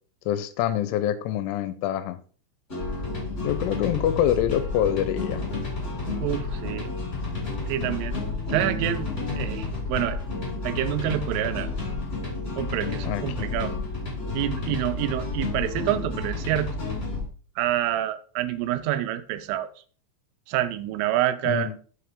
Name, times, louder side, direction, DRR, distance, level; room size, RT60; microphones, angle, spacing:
voice 1, 0.3-2.2 3.4-5.4 13.0-13.5 21.4-21.8, left 11 dB, 85° left, 3.1 m, -26 dB
sound 1, 2.7-17.2, left 3 dB, 15° left, 3.2 m, -31 dB
voice 2, 6.2-6.9 7.7-8.2 8.5-10.2 10.6-11.7 12.6-13.7 14.3-16.7 17.6-19.7 20.5-21.7, right 13 dB, 90° right, 3.3 m, -27 dB
8.5 x 7.3 x 3.6 m
omnidirectional pair, 5.6 m